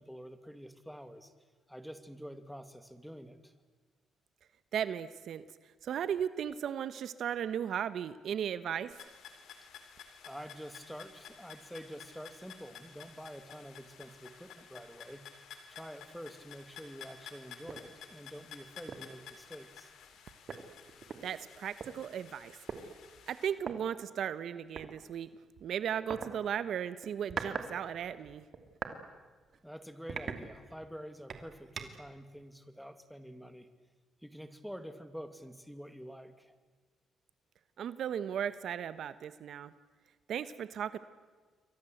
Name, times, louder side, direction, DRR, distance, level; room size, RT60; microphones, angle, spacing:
voice 1, 0.0-1.3 1.7-3.5 10.2-15.3 15.7-19.9 29.6-33.7 34.2-36.5, equal, ahead, 10 dB, 2.5 m, -47 dB
voice 2, 4.7-5.4 5.8-8.9 21.2-22.6 23.3-25.3 25.6-28.5 37.8-39.7 40.3-41.0, right 9 dB, 65° right, 14 dB, 1.2 m, -36 dB
sound 1, 8.9-23.5, left 7 dB, 75° left, 3.7 m, -53 dB
sound 2, 17.7-17.9 18.3-18.5 18.9-19.2 20.1-20.2 20.5-21.9 22.7-22.8 23.6-23.8 24.8-24.9 26.1-26.3 27.0-27.7 28.0-29.0 29.4-29.6 30.1-30.9 31.3-32.1, right 6 dB, 50° right, 2.8 m, -41 dB
28.5 x 23.5 x 8.0 m, 1.4 s
cardioid pair, 90°, 0 cm